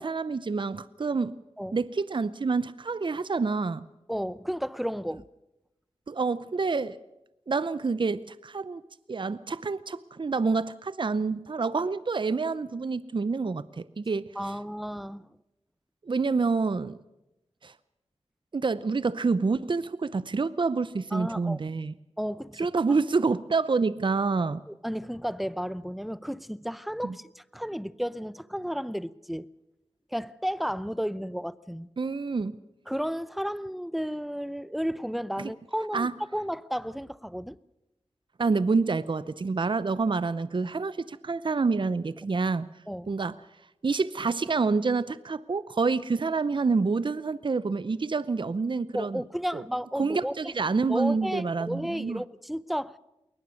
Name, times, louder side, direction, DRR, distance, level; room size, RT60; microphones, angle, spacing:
voice 1, 0.0-1.3 1.7-3.8 6.1-7.0 7.5-8.8 9.1-14.3 16.0-17.0 17.6-17.7 18.5-21.9 22.6-24.6 27.0-27.1 32.0-32.6 35.4-35.5 35.9-36.1 38.4-42.7 43.1-43.4 43.8-49.2 49.5-49.6 50.0-52.2, right 4 dB, 45° right, 0.7 m, -27 dB
voice 2, 4.1-5.2 14.4-15.3 21.1-21.6 22.2-22.7 24.7-29.5 30.1-31.9 32.9-37.6 42.9-43.1 48.9-50.5 50.9-53.0, equal, ahead, 0.7 m, -33 dB
21.5 x 19.5 x 6.4 m
cardioid pair, 55°, 11 cm